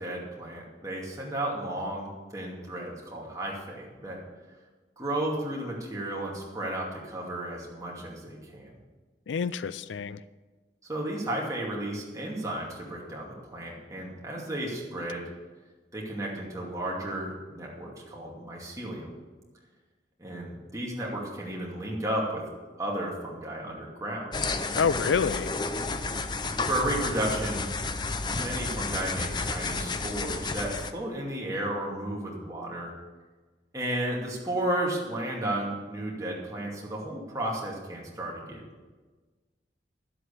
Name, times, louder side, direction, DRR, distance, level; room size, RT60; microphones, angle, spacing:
voice 1, 0.0-4.2 5.0-8.7 10.9-15.3 15.9-19.1 20.2-22.5 22.8-24.3 26.7-27.7 28.3-32.9 33.7-38.6, right 1 dB, 20° right, -3 dB, 2.4 m, -33 dB
voice 2, 9.3-10.2 24.7-25.5, left 6 dB, 80° left, 15 dB, 0.4 m, -27 dB
sound 1, 24.3-30.9, left 3 dB, 25° left, 0.5 m, -31 dB
12.5 x 7.9 x 6.9 m, 1.3 s
head